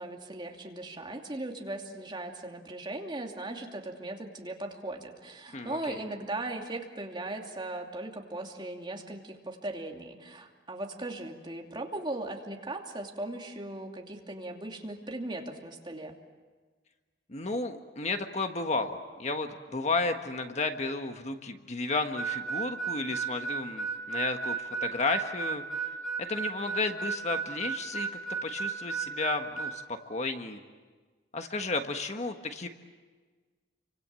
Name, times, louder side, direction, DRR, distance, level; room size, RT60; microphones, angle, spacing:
voice 1, 0.0-16.1, right 2 dB, 25° right, 1 dB, 2.7 m, -38 dB
voice 2, 5.5-6.0 17.3-25.6 26.2-28.1 28.4-30.6 31.3-32.7, left 3 dB, 40° left, 6 dB, 1.5 m, -33 dB
Harmonica, 22.2-29.8, right 5 dB, ahead, 4.7 m, -33 dB
29.5 x 25.0 x 7.7 m, 1.4 s
head